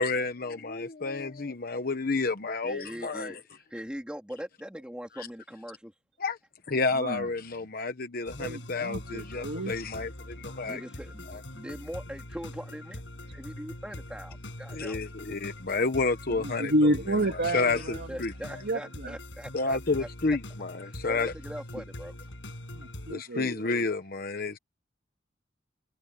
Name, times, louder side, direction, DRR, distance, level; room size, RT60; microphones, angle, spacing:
voice 1, 0.0-3.4 5.2-5.3 6.2-6.4 6.7-10.8 11.3-11.4 14.7-16.7 17.5-18.3 19.5-21.3 23.1-24.6, left 3 dB, 50° left, 1.0 m, -30 dB
voice 2, 2.6-3.4 3.7-5.9 10.6-13.0 13.3-15.0 15.3-15.4 17.7-17.8 18.1-20.4 20.8-22.1, equal, 5° right, 2.6 m, -41 dB
voice 3, 6.9-7.3 8.4-9.7 16.3-18.2 18.6-19.2 22.7-23.6, right 1 dB, 65° right, 1.9 m, -30 dB
sound 1, 8.3-23.1, left 1 dB, 75° left, 7.3 m, -43 dB
head